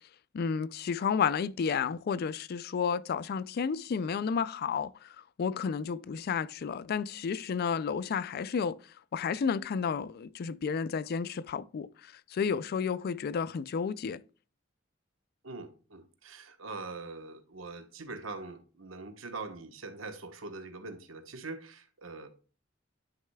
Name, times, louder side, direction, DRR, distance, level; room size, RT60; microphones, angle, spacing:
voice 1, 0.3-8.8 9.1-14.2, left 6 dB, 50° left, 0.3 m, -32 dB
voice 2, 15.4-22.3, right 3 dB, 90° right, 1.1 m, -43 dB
10.5 x 6.4 x 2.3 m
head